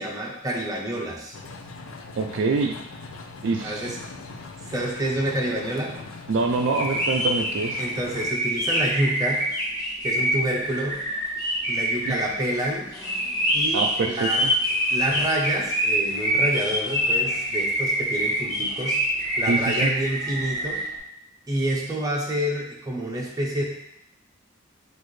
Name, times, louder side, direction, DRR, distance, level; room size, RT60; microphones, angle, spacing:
voice 1, 0.0-1.3 3.6-4.0 4.6-6.0 7.8-9.4 10.0-11.0 11.7-12.9 13.5-14.4 14.9-19.0 19.4-20.8 21.5-23.6, right 1 dB, 20° right, -3 dB, 0.8 m, -28 dB
sound 1, 1.3-8.3, left 3 dB, 85° left, 0.5 m, -40 dB
voice 2, 2.2-2.7 3.4-3.9 6.3-7.8 12.1-12.2 13.7-14.5 19.5-19.9, right 3 dB, 65° right, 3 dB, 0.4 m, -25 dB
sound 2, 6.6-20.9, equal, 20° left, 1.3 m, -26 dB
6.2 x 2.6 x 3.1 m, 0.77 s
head